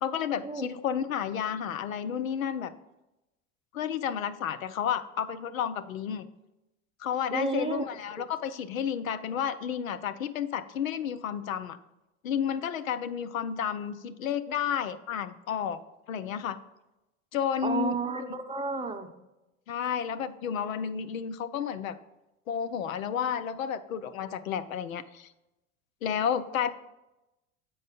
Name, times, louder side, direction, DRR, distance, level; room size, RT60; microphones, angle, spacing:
voice 1, 0.0-2.7 3.7-6.3 7.0-11.8 12.2-15.8 16.1-16.6 17.3-18.3 19.7-21.9 22.5-25.3 26.0-26.7, left 8 dB, 85° left, 13 dB, 0.6 m, -31 dB
voice 2, 7.3-7.8 8.2-8.3 17.6-19.1, right 4 dB, 15° right, 7 dB, 0.7 m, -32 dB
7.1 x 5.3 x 5.1 m, 0.95 s
hypercardioid pair, 80°, 40 cm